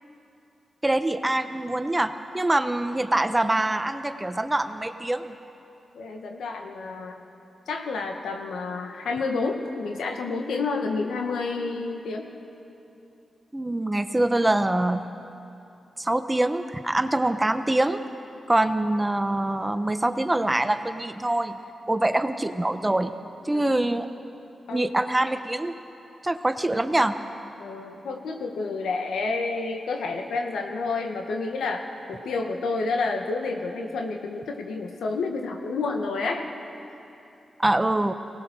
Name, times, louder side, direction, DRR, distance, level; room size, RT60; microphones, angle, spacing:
voice 1, 0.8-5.3 13.5-15.0 16.0-18.0 18.5-21.6 21.9-23.1 23.4-24.1 24.7-25.8 26.2-27.2 37.6-38.1, right 1 dB, 20° right, 9 dB, 1.1 m, -24 dB
voice 2, 5.9-7.2 7.7-12.3 23.5-23.7 24.7-24.9 27.6-36.4, left 3 dB, 90° left, 3 dB, 1.7 m, -29 dB
23.5 x 18.5 x 6.4 m, 2.8 s
cardioid pair, 60°, 0 cm